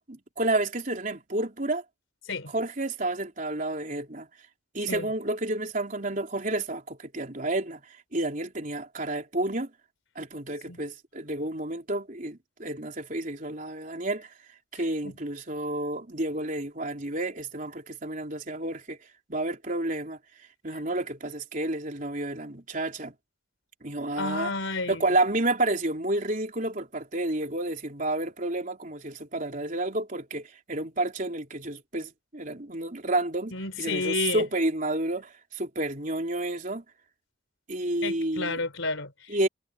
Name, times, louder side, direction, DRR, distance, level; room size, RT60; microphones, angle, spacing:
voice 1, 0.0-1.8 2.5-4.3 4.7-9.7 10.2-14.3 14.7-19.0 19.3-20.2 20.6-23.1 23.8-24.6 24.9-36.8 37.7-38.6 39.3-39.5, right 2 dB, 40° right, 3.8 m, -30 dB
voice 2, 24.2-25.0 33.5-34.4 38.0-39.5, left 3 dB, 75° left, 3.8 m, -31 dB
head